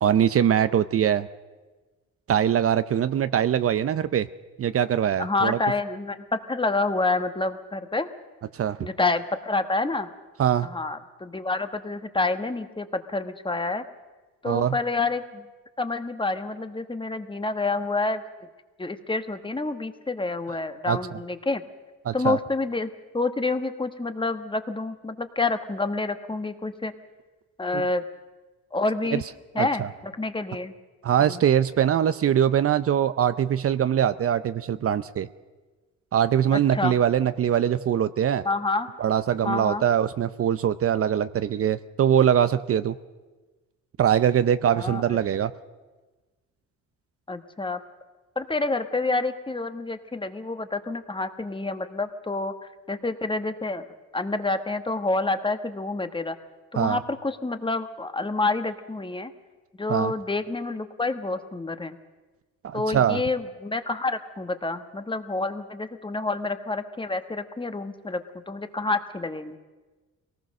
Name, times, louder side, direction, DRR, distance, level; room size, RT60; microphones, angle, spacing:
voice 1, 0.0-1.3 2.3-4.3 4.6-5.6 8.5-8.9 10.4-10.7 14.4-14.8 20.8-21.0 22.0-22.4 27.7-27.8 29.1-29.2 29.6-29.9 31.0-35.3 36.1-38.4 39.0-43.0 44.0-45.5 56.8-57.0 59.9-60.1 62.6-63.2, right 9 dB, 50° right, 13 dB, 0.6 m, -22 dB
voice 2, 5.2-8.1 8.8-10.1 10.6-13.8 14.4-15.5 15.8-18.2 18.8-21.6 22.1-26.9 27.6-28.0 28.7-29.2 29.5-30.7 31.2-31.4 36.5-37.0 38.4-38.9 39.4-39.8 44.7-45.0 47.3-47.8 48.3-52.5 52.9-53.8 54.1-56.4 56.7-59.3 59.8-62.0 62.7-69.6, left 3 dB, 15° left, 9 dB, 1.3 m, -28 dB
23.0 x 18.5 x 6.5 m, 1.3 s
cardioid pair, 90°, 30 cm